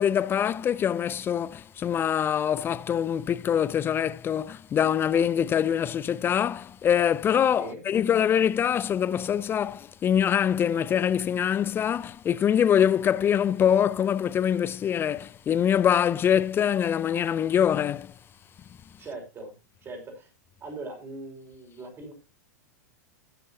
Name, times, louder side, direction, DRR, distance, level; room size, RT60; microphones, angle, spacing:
voice 1, 0.0-18.1, left 9 dB, 25° left, 0.5 m, -24 dB
voice 2, 19.0-19.6 19.8-20.3 20.6-22.1, right 2 dB, 25° right, 5.2 m, -40 dB
19.5 x 7.8 x 2.8 m
figure-of-eight pair, 95°, 10 cm